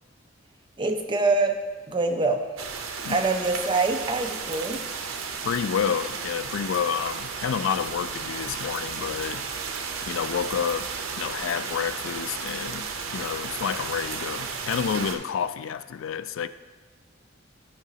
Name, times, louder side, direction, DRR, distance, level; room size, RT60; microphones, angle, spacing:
voice 1, 0.8-2.5 3.1-4.8, right 3 dB, 25° right, 4 dB, 0.6 m, -25 dB
sound 1, 2.6-15.2, right 5 dB, 85° right, 0.7 m, -34 dB
voice 2, 5.4-9.5 10.0-10.9 11.2-16.5, left 7 dB, 70° left, 13 dB, 0.3 m, -29 dB
11.0 x 4.9 x 2.8 m, 1.5 s
head